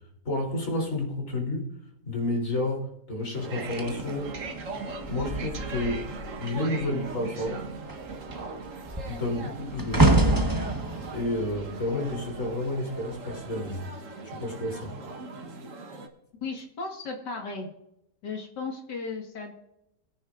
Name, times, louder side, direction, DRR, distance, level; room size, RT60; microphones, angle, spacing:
voice 1, 0.3-1.7 2.0-4.4 5.1-6.1 6.4-7.7 9.1-10.3 11.1-13.9 14.2-15.0, left 1 dB, 50° left, -1 dB, 3.9 m, -30 dB
sound 1, 3.3-16.1, right 4 dB, 50° right, 1.6 m, -39 dB
sound 2, 3.7-6.4 6.7-7.1 7.4-12.7 13.5-13.7, right 1 dB, 15° right, 1.0 m, -27 dB
voice 2, 16.4-17.7 18.2-19.5, left 4 dB, 80° left, 2 dB, 2.4 m, -35 dB
22.0 x 9.9 x 2.5 m, 0.82 s
omnidirectional pair, 1.8 m